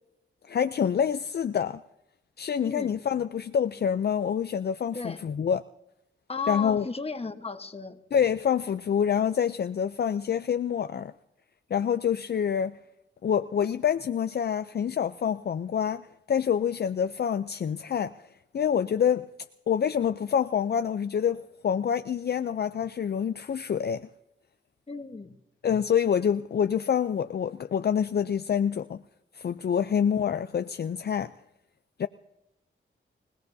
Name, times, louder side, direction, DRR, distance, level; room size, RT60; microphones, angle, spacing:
voice 1, 0.5-1.8 2.4-5.6 6.5-6.8 8.1-11.1 11.7-12.8 13.2-18.2 18.5-19.3 19.7-24.1 25.6-29.0 29.3-31.3 32.0-32.1, left 8 dB, 55° left, 11 dB, 0.5 m, -26 dB
voice 2, 2.6-2.9 4.9-5.2 6.3-8.0 24.9-25.4, left 4 dB, 30° left, 8 dB, 1.2 m, -35 dB
26.0 x 18.0 x 2.7 m, 0.89 s
cardioid pair, 75°, 20 cm